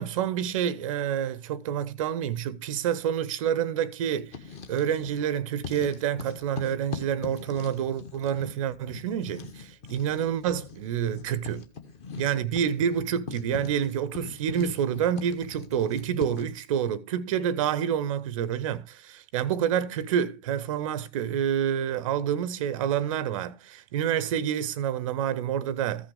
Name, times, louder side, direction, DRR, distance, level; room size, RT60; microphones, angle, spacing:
voice 1, 0.0-4.4 4.7-11.7 12.2-26.1, right 9 dB, 30° right, 0.6 m, -28 dB
Writing, 4.2-5.3 5.6-16.6, left 5 dB, 15° left, 1.0 m, -42 dB
14.5 x 5.8 x 3.4 m
figure-of-eight pair, 125°, 37 cm